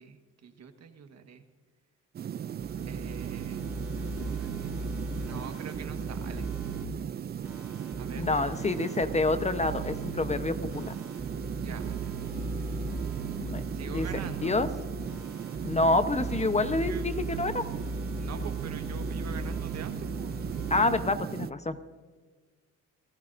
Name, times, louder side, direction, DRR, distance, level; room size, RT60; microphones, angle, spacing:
voice 1, 0.0-1.4 2.9-3.7 3.9-4.7 5.0-6.5 8.0-8.3 11.5-12.1 13.7-14.8 16.8-17.1 18.2-20.4, right 7 dB, 60° right, 7 dB, 1.5 m, -45 dB
sound 1, 2.1-21.5, right 9 dB, 35° right, 0.4 m, -37 dB
sound 2, 2.6-6.8 7.4-20.9, right 1 dB, 5° right, 4.8 m, -38 dB
voice 2, 8.2-10.9 13.5-13.6 13.9-14.1 14.4-14.7 15.6-17.6 20.7-21.8, left 2 dB, 20° left, 10 dB, 0.9 m, -27 dB
28.5 x 15.0 x 2.6 m, 1.4 s
cardioid pair, 90°, 30 cm